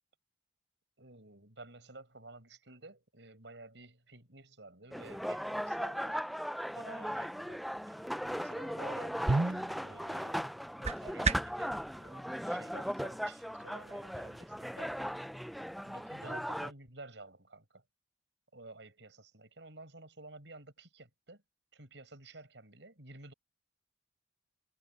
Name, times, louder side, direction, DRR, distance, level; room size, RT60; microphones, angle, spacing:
voice 1, 1.0-6.2 6.8-7.6 7.9-8.0 8.3-15.1 15.8-17.8 18.5-21.4 21.7-23.3, right 2 dB, 75° right, 6.5 m, -53 dB
sound 1, 4.9-16.7, equal, ahead, 0.4 m, -38 dB
sound 2, 9.2-11.7, right 3 dB, 35° right, 0.9 m, -33 dB
head